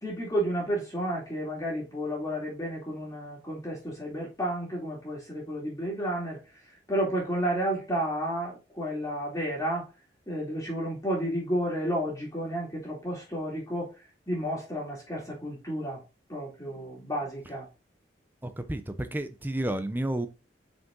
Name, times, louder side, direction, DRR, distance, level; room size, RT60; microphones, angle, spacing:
voice 1, 0.0-9.9 10.3-13.9 14.3-16.0 16.3-17.7, equal, 20° left, 2.5 m, -31 dB
voice 2, 18.4-20.3, right 1 dB, 10° right, 0.7 m, -31 dB
5.7 x 5.4 x 3.7 m
head